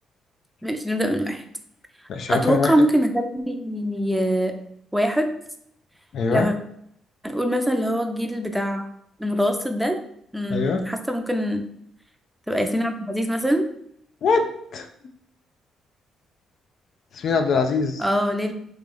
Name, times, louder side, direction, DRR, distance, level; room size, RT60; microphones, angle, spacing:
voice 1, 0.6-1.4 2.3-4.5 4.9-5.3 6.3-6.5 7.2-8.9 9.2-10.0 10.3-11.7 12.5-13.7 18.0-18.5, equal, 5° right, 5 dB, 0.5 m, -23 dB
voice 2, 2.1-2.7 6.1-6.5 10.5-10.8 14.2-14.9 17.1-18.1, left 4 dB, 65° left, 5 dB, 0.4 m, -23 dB
3.2 x 2.9 x 3.8 m, 0.71 s
cardioid pair, 90°, 0 cm